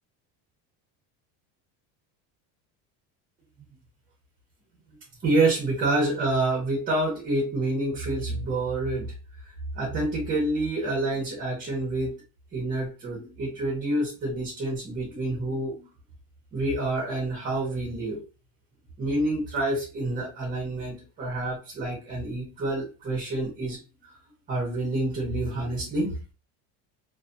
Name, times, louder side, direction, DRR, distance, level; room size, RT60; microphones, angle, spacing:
voice 1, 5.2-9.1 9.7-12.2 12.5-15.9 16.5-18.2 19.0-24.1 24.5-26.2, right 2 dB, 25° right, -3 dB, 0.8 m, -28 dB
2.5 x 2.5 x 2.5 m, 0.33 s
cardioid pair, 165°, 37 cm